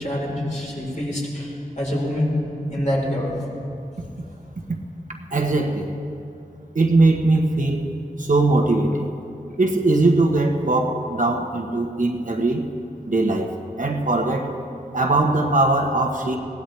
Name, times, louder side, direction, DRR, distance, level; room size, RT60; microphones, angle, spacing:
voice 1, 0.0-2.3 2.7-3.3, equal, 50° left, -4 dB, 4.1 m, -26 dB
voice 2, 5.3-5.9 6.7-7.9 8.3-9.1 9.6-12.6 13.1-13.5 13.8-14.5 14.9-16.4, right 2 dB, 55° right, 2 dB, 1.3 m, -20 dB
20.5 x 17.0 x 3.4 m, 2.6 s
wide cardioid pair, 70°, 16 cm